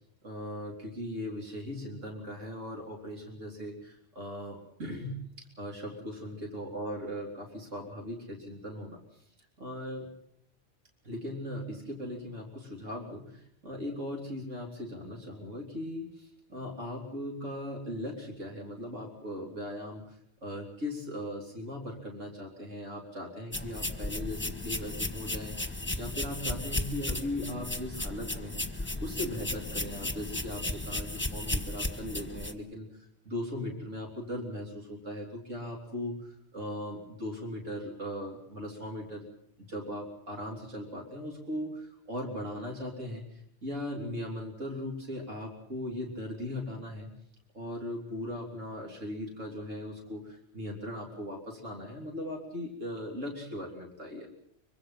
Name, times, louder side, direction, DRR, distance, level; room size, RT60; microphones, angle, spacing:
voice 1, 0.2-5.3 5.6-9.0 9.6-10.1 11.0-39.3 39.6-47.1 47.5-54.3, left 1 dB, 85° right, -1 dB, 3.9 m, -39 dB
sound 1, 23.5-32.5, left 2 dB, 10° left, 1.4 m, -35 dB
24.5 x 24.0 x 5.8 m, 0.69 s
omnidirectional pair, 1.3 m